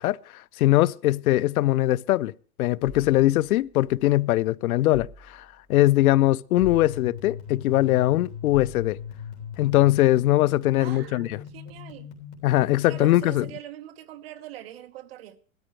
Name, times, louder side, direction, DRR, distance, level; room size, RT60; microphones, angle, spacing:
voice 1, 0.0-2.3 2.6-9.0 9.6-11.3 12.4-13.5, left 16 dB, 80° left, 0.6 m, -21 dB
sound 1, 2.8-4.2 4.9-5.8 6.6-7.5 8.5-9.3, right 1 dB, 15° right, 2.0 m, -47 dB
sound 2, 6.6-13.4, left 8 dB, 50° left, 3.6 m, -40 dB
voice 2, 10.8-12.1 12.8-15.4, right 13 dB, 45° right, 1.0 m, -42 dB
16.0 x 13.0 x 3.2 m
supercardioid pair, 180°, 43 cm